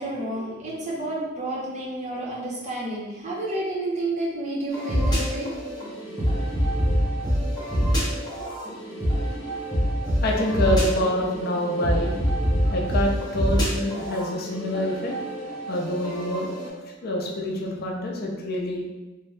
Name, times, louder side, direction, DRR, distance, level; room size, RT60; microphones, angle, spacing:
voice 1, 0.0-5.5, right 1 dB, 35° right, -5 dB, 0.7 m, -30 dB
sound 1, 4.7-16.7, equal, 20° left, 0.8 m, -26 dB
voice 2, 10.2-12.1 12.6-15.1 15.7-16.7 17.0-18.8, left 1 dB, 50° left, -1 dB, 0.4 m, -26 dB
2.5 x 2.2 x 3.2 m, 1.2 s
head